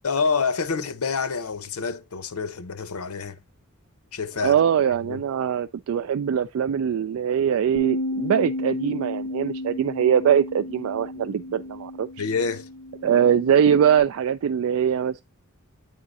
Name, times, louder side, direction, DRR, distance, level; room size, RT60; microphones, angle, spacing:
voice 1, 0.0-3.4 4.1-4.5 5.0-5.2 12.2-12.7, left 5 dB, 80° left, 0.7 m, -27 dB
voice 2, 4.4-12.1 13.0-15.2, right 8 dB, 70° right, 0.3 m, -22 dB
Bass guitar, 7.8-14.0, left 1 dB, 25° left, 1.0 m, -32 dB
9.0 x 3.7 x 4.0 m
head